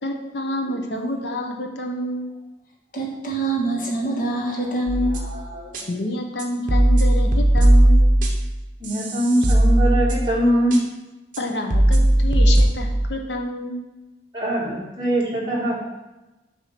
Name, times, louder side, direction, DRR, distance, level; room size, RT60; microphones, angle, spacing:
voice 1, 0.0-2.4 5.9-8.1 11.4-13.8, left 1 dB, 80° left, 3 dB, 0.9 m, -28 dB
voice 2, 2.9-5.9, right 2 dB, 50° left, -2 dB, 1.3 m, -26 dB
sound 1, 4.9-5.3 5.7-5.8 6.4-8.6 8.8-10.4 10.7-10.8 11.3-11.4 11.7-13.1, right 1 dB, 50° right, 0.9 m, -17 dB
voice 3, 8.8-10.8 14.3-15.8, right 1 dB, 25° right, -6 dB, 1.6 m, -22 dB
7.4 x 2.8 x 5.7 m, 1.0 s
head